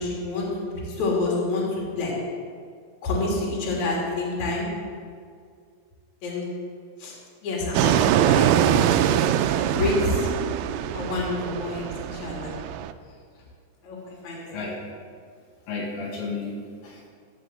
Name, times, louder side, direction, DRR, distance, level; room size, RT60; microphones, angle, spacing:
voice 1, 0.0-2.1 3.0-4.7 6.2-6.4 7.0-7.1 7.4-9.2 9.4-10.3 10.9-12.5 13.8-14.0 14.2-14.6, left 2 dB, 45° left, -4 dB, 3.7 m, -28 dB
Fixed-wing aircraft airplane, 7.7-12.9, right 10 dB, 85° right, 3.0 m, -23 dB
voice 2, 14.5-14.8 15.7-17.1, left 3 dB, 75° left, -3 dB, 3.7 m, -33 dB
15.5 x 5.8 x 7.7 m, 2.1 s
omnidirectional pair, 5.4 m